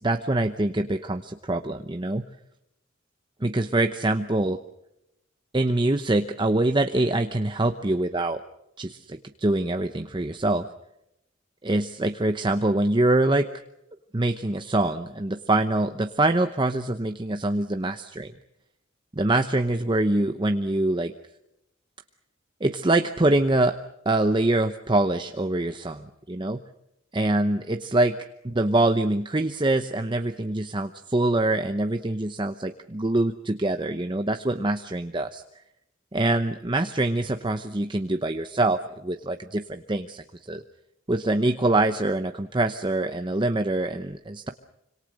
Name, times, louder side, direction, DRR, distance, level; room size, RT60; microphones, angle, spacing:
voice 1, 0.0-2.2 3.4-4.6 5.5-8.4 8.8-10.7 11.6-13.5 14.1-18.3 19.1-21.1 22.6-23.8 24.0-26.6 27.1-28.2 28.4-35.4 36.1-40.6 41.1-44.5, right 2 dB, 25° right, 7 dB, 0.9 m, -24 dB
26.0 x 26.0 x 6.5 m, 0.83 s
head